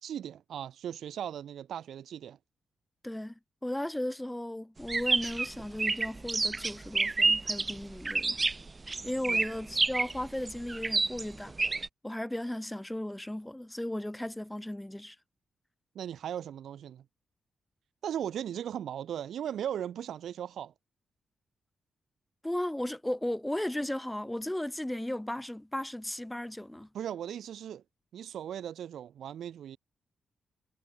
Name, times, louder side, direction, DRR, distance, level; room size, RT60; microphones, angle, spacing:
voice 1, 0.0-2.4 9.3-9.4 15.9-17.0 18.0-20.7 26.9-27.8 28.1-29.8, right 10 dB, 80° right, 2.5 m, -37 dB
voice 2, 3.0-3.3 3.6-8.4 9.0-11.5 12.0-15.2 22.4-26.9, left 1 dB, 5° left, 4.8 m, -35 dB
sound 1, 4.8-11.9, right 3 dB, 25° right, 1.0 m, -29 dB
wide cardioid pair, 140°, 0 cm